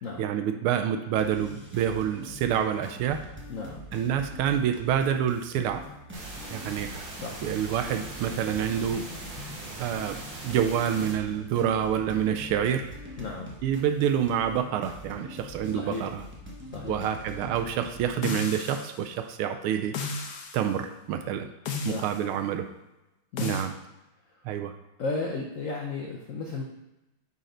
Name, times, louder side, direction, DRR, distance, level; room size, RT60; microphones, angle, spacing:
voice 1, 0.2-3.2 3.9-5.8 6.5-7.2 7.4-9.0 9.8-10.2 10.4-12.8 13.6-16.2 16.8-19.9 20.5-21.5 21.8-22.7 23.4-23.7 24.4-24.7, right 9 dB, 85° right, 7 dB, 1.5 m, -27 dB
sound 1, 1.2-18.6, equal, 10° right, 0.5 m, -44 dB
voice 2, 3.5-3.9 7.2-7.5 13.2-13.5 15.6-16.1 16.7-17.0 21.8-22.1 23.3-23.6 25.0-26.6, left 3 dB, 80° left, 1 dB, 0.7 m, -34 dB
sound 2, 6.1-11.1, right 2 dB, 60° right, 2.1 m, -41 dB
sound 3, 18.2-19.0 19.9-20.6 21.7-22.2 23.4-23.7, left 4 dB, 60° left, 1.1 m, -33 dB
9.2 x 4.2 x 3.8 m, 0.97 s
omnidirectional pair, 2.3 m